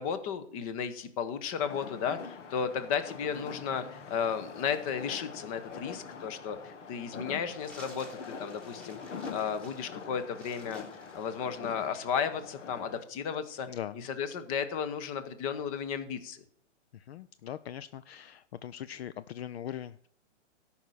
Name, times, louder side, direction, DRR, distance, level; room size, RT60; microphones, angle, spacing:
voice 1, 0.0-10.8 11.1-13.7 13.9-16.4, left 7 dB, 30° left, 11 dB, 1.0 m, -34 dB
sound 1, 1.6-13.0, left 5 dB, 80° left, 1.7 m, -44 dB
sound 2, 7.5-12.0, right 1 dB, 5° left, 1.7 m, -55 dB
voice 2, 13.7-14.0 16.9-20.1, left 10 dB, 60° left, 15 dB, 0.5 m, -41 dB
13.5 x 5.7 x 6.4 m, 0.63 s
hypercardioid pair, 165°, 36 cm